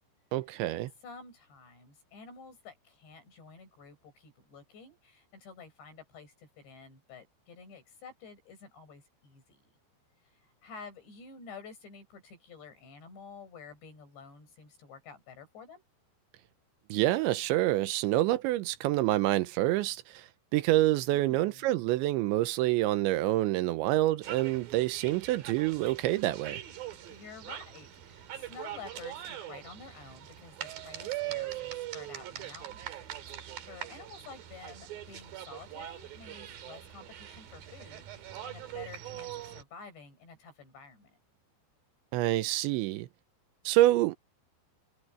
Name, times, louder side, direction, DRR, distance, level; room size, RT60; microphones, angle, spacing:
voice 1, 0.3-0.9 16.9-26.6 42.1-43.1 43.7-44.2, right 16 dB, 85° right, 3.1 m, -27 dB
voice 2, 1.0-9.7 10.2-15.8 21.1-21.7 27.1-32.9 33.7-41.2, left 5 dB, 65° left, 9.1 m, -50 dB
sound 1, 24.2-39.6, right 12 dB, 60° right, 3.2 m, -42 dB
omnidirectional pair, 5.4 m